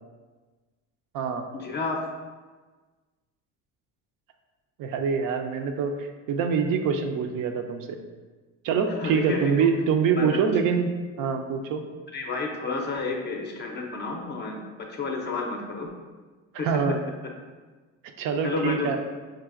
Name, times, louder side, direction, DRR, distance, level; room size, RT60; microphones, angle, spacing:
voice 1, 1.5-2.0 8.9-9.7 10.2-10.4 12.1-15.9 16.6-16.8 18.4-19.0, left 3 dB, 30° left, 2 dB, 0.5 m, -31 dB
voice 2, 4.8-8.0 8.6-10.9 11.2-11.8 16.6-17.0 18.2-19.0, right 6 dB, 65° right, 5 dB, 0.5 m, -25 dB
4.7 x 2.5 x 2.4 m, 1.3 s
cardioid pair, 105°, 35 cm